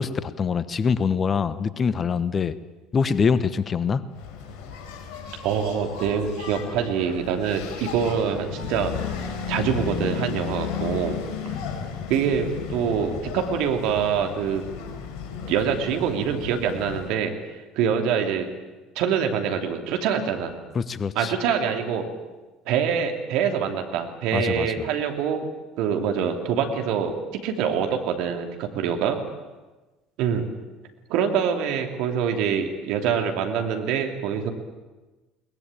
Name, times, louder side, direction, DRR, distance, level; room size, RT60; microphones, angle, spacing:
voice 1, 0.0-2.5 2.9-4.0 20.7-21.3 24.3-24.8, left 6 dB, 35° left, 15 dB, 1.1 m, -24 dB
Engine, 4.1-17.1, left 7 dB, 60° left, 4.4 m, -34 dB
voice 2, 5.4-8.9 9.5-11.2 12.1-14.6 15.5-17.3 17.7-18.5 18.9-20.6 21.1-22.1 22.7-25.5 25.8-29.2 30.2-30.4 31.1-34.5, right 7 dB, 65° right, 5 dB, 2.9 m, -25 dB
22.0 x 19.5 x 9.0 m, 1.2 s
hypercardioid pair, 65°, 0 cm